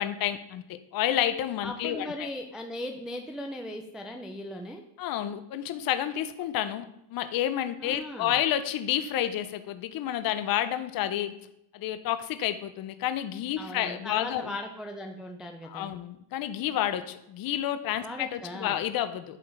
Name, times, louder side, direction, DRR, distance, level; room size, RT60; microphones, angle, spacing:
voice 1, 0.0-2.3 5.0-11.3 11.7-14.6 15.6-19.4, left 11 dB, 45° left, 11 dB, 0.6 m, -30 dB
voice 2, 1.6-4.8 7.8-8.3 13.6-15.9 18.0-18.8, left 1 dB, ahead, 3 dB, 0.3 m, -38 dB
11.0 x 3.9 x 3.2 m, 0.80 s
cardioid pair, 115°, 49 cm